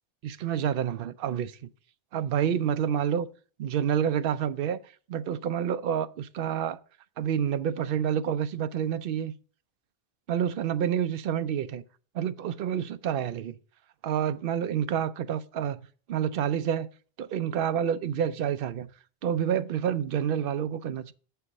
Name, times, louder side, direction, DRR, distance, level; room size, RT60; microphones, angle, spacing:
voice 1, 0.2-1.6 2.1-3.3 3.6-4.8 5.1-6.8 7.2-9.3 10.3-11.8 12.1-13.5 14.0-15.8 16.1-16.9 17.2-18.9 19.2-21.1, right 9 dB, 65° right, 0.7 m, -28 dB
7.1 x 4.6 x 6.4 m
omnidirectional pair, 1.0 m